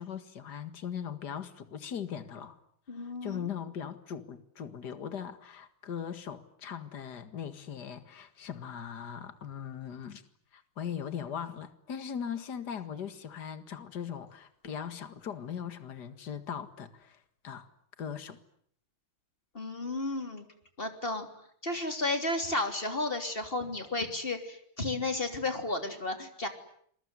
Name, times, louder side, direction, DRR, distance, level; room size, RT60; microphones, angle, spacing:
voice 1, 0.0-2.6 2.9-10.2 10.5-17.7 18.0-18.4, left 8 dB, 50° left, 11 dB, 2.4 m, -39 dB
voice 2, 2.9-3.5 19.6-20.5 20.8-21.3 21.6-26.5, left 2 dB, 25° left, 7 dB, 3.4 m, -33 dB
27.5 x 22.0 x 9.6 m, 0.65 s
omnidirectional pair, 2.3 m